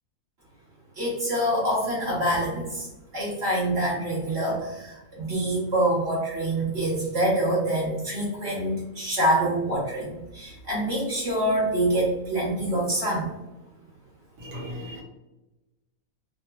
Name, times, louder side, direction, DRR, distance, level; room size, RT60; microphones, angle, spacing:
voice 1, 1.0-2.9 3.1-13.3, right 1 dB, 50° right, -7 dB, 1.3 m, -26 dB
voice 2, 14.4-15.0, equal, 80° right, -3 dB, 1.5 m, -36 dB
3.2 x 2.9 x 2.2 m, 1.0 s
omnidirectional pair, 1.4 m